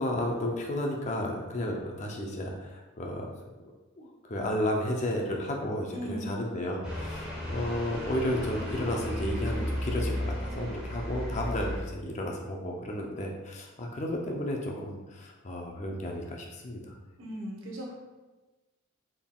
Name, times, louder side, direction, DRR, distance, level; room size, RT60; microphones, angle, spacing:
voice 1, 0.0-3.3 3.6-3.7 4.0-17.0, left 1 dB, 35° left, 1 dB, 0.4 m, -33 dB
voice 2, 5.9-6.4 17.2-17.9, equal, 70° right, -3 dB, 0.9 m, -37 dB
sound 1, 6.8-11.8, equal, 5° right, 0.8 m, -34 dB
4.0 x 3.5 x 2.3 m, 1.2 s
head